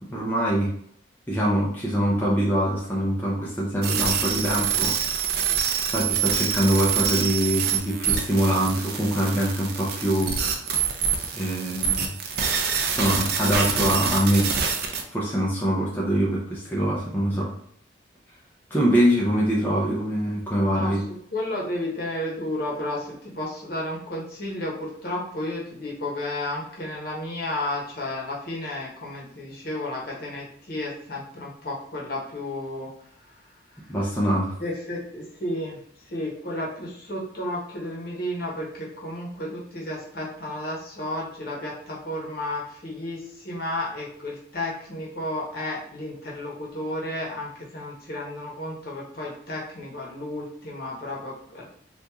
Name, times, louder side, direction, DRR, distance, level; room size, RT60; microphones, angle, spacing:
voice 1, 0.1-0.7 1.3-4.9 5.9-10.4 11.3-12.1 12.9-14.5 15.1-17.5 18.7-21.0 33.9-34.5, equal, 10° left, -6 dB, 0.5 m, -24 dB
sound 1, 3.8-15.0, right 7 dB, 55° right, 0.5 m, -26 dB
voice 2, 20.7-32.9 34.6-35.8 36.1-51.6, left 1 dB, 50° left, -4 dB, 1.0 m, -32 dB
2.9 x 2.5 x 3.5 m, 0.64 s
head